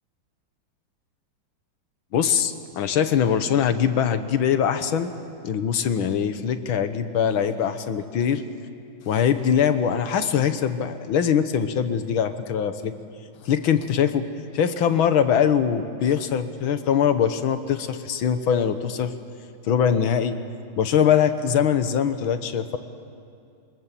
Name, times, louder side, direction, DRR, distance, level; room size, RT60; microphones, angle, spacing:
voice 1, 2.1-5.1 5.4-8.4 9.1-12.9 13.4-14.3 14.5-19.1 19.6-20.4 20.8-22.8, left 8 dB, 80° left, 10 dB, 1.9 m, -22 dB
27.5 x 24.0 x 7.6 m, 2.4 s
omnidirectional pair, 2.2 m